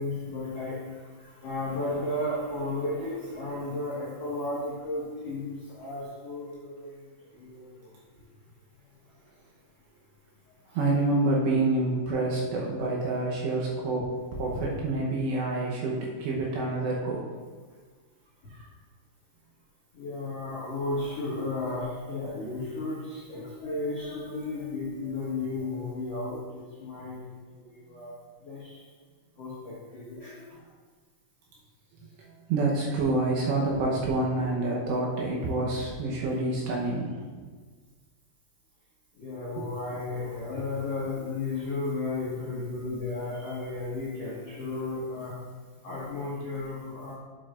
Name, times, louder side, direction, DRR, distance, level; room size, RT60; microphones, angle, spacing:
voice 1, 0.0-7.9 10.7-10.8 19.9-28.1 28.4-28.8 29.4-30.7 39.1-45.3 45.8-47.1, left 2 dB, 75° left, -9 dB, 1.4 m, -34 dB
voice 2, 10.7-17.3 18.6-18.7 21.3-21.4 32.3-37.3 39.6-39.7, right 2 dB, 75° right, -3 dB, 2.8 m, -28 dB
9.1 x 7.9 x 2.5 m, 1.5 s
omnidirectional pair, 5.7 m